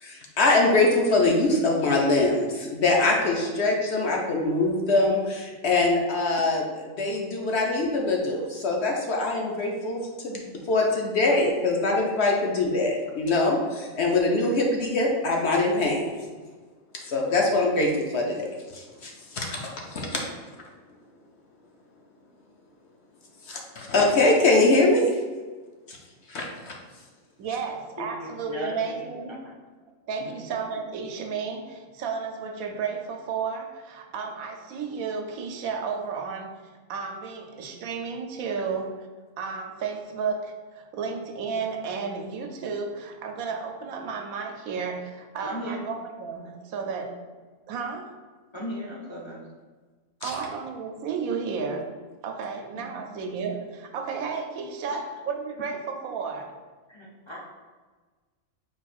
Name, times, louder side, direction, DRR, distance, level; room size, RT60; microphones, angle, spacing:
voice 1, 0.0-16.1 17.1-18.5 18.7-20.2 23.5-25.0 25.9-26.0 26.3-26.7 50.2-50.3, left 2 dB, 60° left, 0 dB, 0.8 m, -23 dB
voice 2, 27.4-29.3 30.1-39.1 39.4-47.2 47.7-48.1 50.2-51.9 52.2-56.6, right 5 dB, 85° right, 4 dB, 1.0 m, -33 dB
voice 3, 28.4-29.4 30.2-30.3 45.4-45.8 48.5-49.4 52.7-53.0 54.8-55.0 56.9-57.4, equal, 30° left, -5 dB, 0.6 m, -37 dB
4.6 x 2.3 x 4.2 m, 1.4 s
omnidirectional pair, 1.4 m